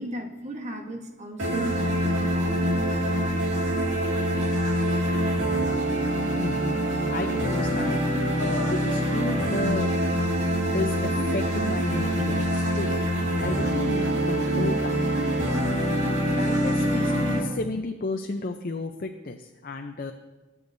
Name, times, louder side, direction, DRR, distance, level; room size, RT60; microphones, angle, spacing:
voice 1, 0.0-3.5 3.8-4.3 4.9-5.4, equal, 40° right, 3 dB, 1.2 m, -38 dB
sound 1, 1.4-17.4, equal, 90° right, 2.2 m, -25 dB
voice 2, 7.1-8.0 8.4-9.9 10.7-13.0 13.4-15.0 16.3-20.1, left 2 dB, 50° left, 4 dB, 0.6 m, -32 dB
22.0 x 8.6 x 2.7 m, 1.1 s
head